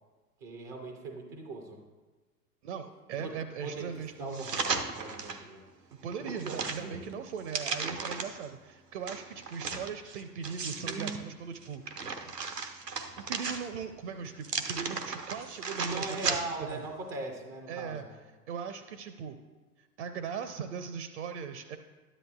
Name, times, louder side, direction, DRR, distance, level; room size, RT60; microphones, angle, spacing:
voice 1, 0.4-1.8 3.2-5.6 6.2-7.0 15.9-18.2, right 2 dB, 15° right, 3 dB, 0.3 m, -40 dB
voice 2, 2.6-4.5 6.0-11.8 13.2-16.8 17.7-18.1 18.5-19.4 19.8-21.8, right 6 dB, 50° right, 8 dB, 0.6 m, -39 dB
sound 1, 4.3-5.4 5.9-8.5 9.1-11.2 11.6-13.9 14.4-16.7 17.1-17.2, right 5 dB, 85° right, 0.9 m, -36 dB
13.0 x 10.0 x 2.3 m, 1.3 s
figure-of-eight pair, 100°, 47 cm